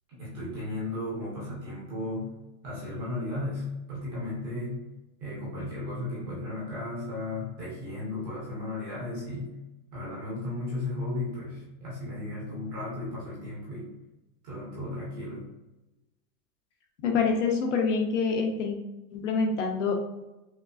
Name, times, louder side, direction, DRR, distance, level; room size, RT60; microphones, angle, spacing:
voice 1, 0.2-2.3 2.6-4.8 5.2-9.6 9.9-13.9 14.4-15.5, left 2 dB, 15° right, -7 dB, 0.6 m, -35 dB
voice 2, 17.0-18.8 19.1-19.9, left 5 dB, 50° left, 2 dB, 0.7 m, -26 dB
5.1 x 2.0 x 2.4 m, 0.99 s
supercardioid pair, 175°, 46 cm